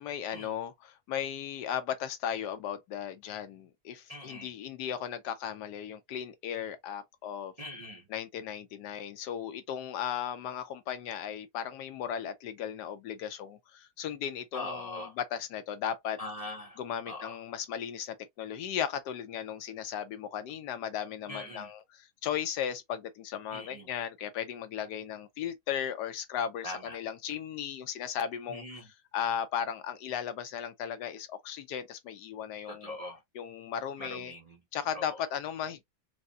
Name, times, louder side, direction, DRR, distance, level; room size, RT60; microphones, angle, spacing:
voice 1, 0.0-7.5 8.1-16.2 16.8-28.6 29.1-33.0 33.3-34.3 34.7-35.9, left 9 dB, 90° left, 1.3 m, -36 dB
voice 2, 4.1-4.5 7.6-8.0 14.5-15.2 16.2-16.8 17.1-17.4 21.3-21.7 23.5-23.9 26.6-27.0 28.5-28.9 32.7-33.2 34.0-34.6 34.9-35.2, left 1 dB, 40° right, 0.5 m, -41 dB
4.7 x 2.1 x 2.6 m
omnidirectional pair, 1.7 m